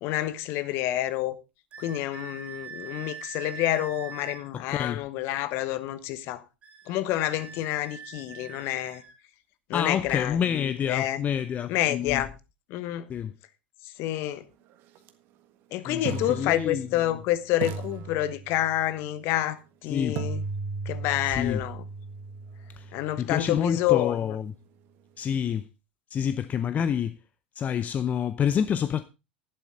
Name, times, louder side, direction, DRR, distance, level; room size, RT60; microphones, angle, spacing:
voice 1, 0.0-1.4 1.8-6.4 6.9-9.0 9.7-10.4 10.9-11.2 11.7-12.3 12.7-13.1 13.8-14.4 15.7-20.4 20.8-21.8 22.9-24.2, left 13 dB, 45° left, 1.2 m, -28 dB
sound 1, 1.7-4.5 6.6-9.2, right 6 dB, 25° right, 3.1 m, -43 dB
voice 2, 4.5-5.1 9.7-12.3 13.1-13.3 15.9-16.9 19.9-20.2 21.3-21.6 22.7-24.5 25.2-25.7 26.1-27.2 27.5-29.0, left 8 dB, 25° left, 0.6 m, -28 dB
sound 2, 15.0-15.1 16.1-17.2 17.6-18.9 20.2-24.1, right 4 dB, 45° right, 1.5 m, -37 dB
11.5 x 11.5 x 3.7 m
figure-of-eight pair, 85°, 6 cm